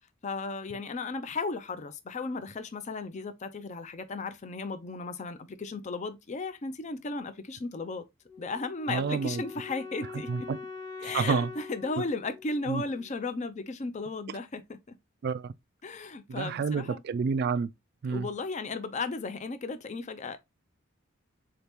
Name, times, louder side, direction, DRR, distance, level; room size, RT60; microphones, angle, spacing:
voice 1, 0.2-8.0 8.4-10.3 11.0-14.8 15.8-17.0 18.1-20.4, left 3 dB, 35° left, 0.5 m, -35 dB
Wind instrument woodwind instrument, 8.3-13.3, left 4 dB, 20° left, 0.9 m, -44 dB
voice 2, 8.9-9.4 10.3-10.6 11.0-11.5 12.7-12.8 15.2-15.5 16.3-17.7 18.0-18.3, right 5 dB, 50° right, 0.3 m, -29 dB
4.0 x 2.8 x 3.4 m
head